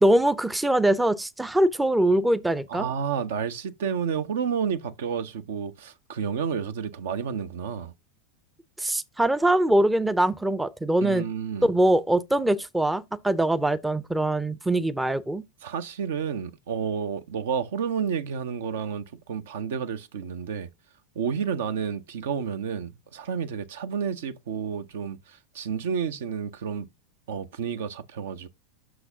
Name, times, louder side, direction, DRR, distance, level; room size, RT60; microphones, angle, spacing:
voice 1, 0.0-2.9 8.8-11.2 11.6-15.4, right 1 dB, 5° right, 0.5 m, -23 dB
voice 2, 2.7-7.9 11.0-11.7 15.6-20.7 21.2-26.9 27.3-28.5, right 7 dB, 65° right, 0.6 m, -30 dB
7.8 x 6.1 x 2.7 m
figure-of-eight pair, 85°, 0 cm